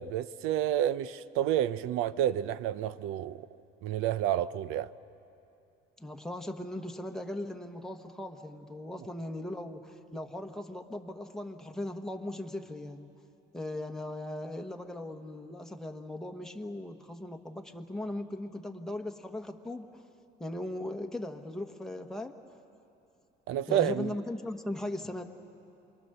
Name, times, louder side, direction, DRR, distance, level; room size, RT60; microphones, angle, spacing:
voice 1, 0.0-3.5 3.8-4.9 23.5-24.1, right 11 dB, 80° right, 0.6 m, -29 dB
voice 2, 6.0-13.1 13.5-20.0 20.4-22.3 23.7-25.2, left 1 dB, ahead, 1.2 m, -38 dB
28.5 x 22.5 x 6.7 m
cardioid pair, 130°, 21 cm